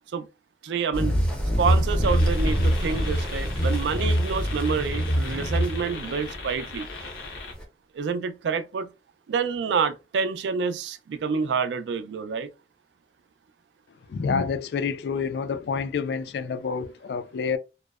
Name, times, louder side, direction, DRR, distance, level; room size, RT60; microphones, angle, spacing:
voice 1, 0.6-1.2 1.6-6.9 7.9-8.9 9.3-12.5, right 5 dB, 80° right, 0.3 m, -28 dB
sound 1, 0.9-7.6, equal, 5° left, 0.5 m, -25 dB
sound 2, 1.3-6.3, equal, 35° right, 0.7 m, -32 dB
sound 3, 2.0-7.5, left 4 dB, 90° left, 0.7 m, -39 dB
voice 2, 14.1-17.6, left 5 dB, 65° left, 0.3 m, -28 dB
2.6 x 2.0 x 2.3 m
head